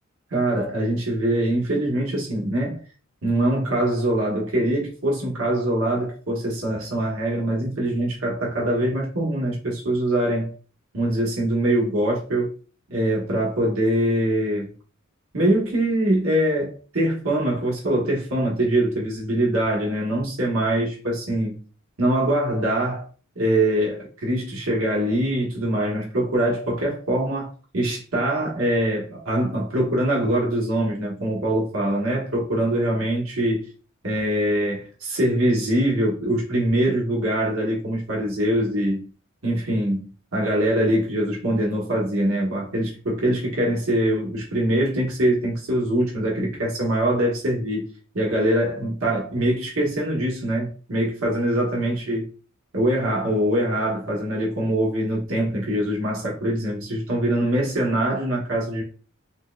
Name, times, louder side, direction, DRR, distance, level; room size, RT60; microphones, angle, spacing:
voice 1, 0.3-2.8 3.2-10.5 10.9-12.5 12.9-14.7 15.3-21.6 22.0-23.1 23.4-33.6 34.0-39.1 39.4-47.8 48.1-52.2 52.7-58.8, right 1 dB, 80° right, 1.1 m, -23 dB
4.4 x 2.1 x 2.3 m
head